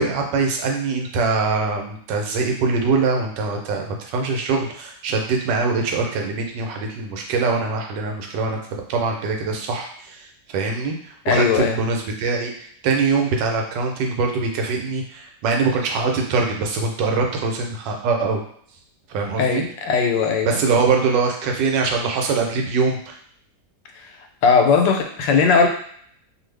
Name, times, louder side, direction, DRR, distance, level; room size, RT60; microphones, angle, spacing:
voice 1, 0.0-10.2 10.5-11.0 11.3-18.4 19.1-19.6 20.4-23.1, right 4 dB, 90° right, 2 dB, 1.3 m, -23 dB
voice 2, 11.3-11.8 19.4-20.6 24.4-25.7, left 5 dB, 90° left, 4 dB, 1.2 m, -18 dB
2.6 x 2.6 x 3.2 m, 0.63 s
omnidirectional pair, 1.9 m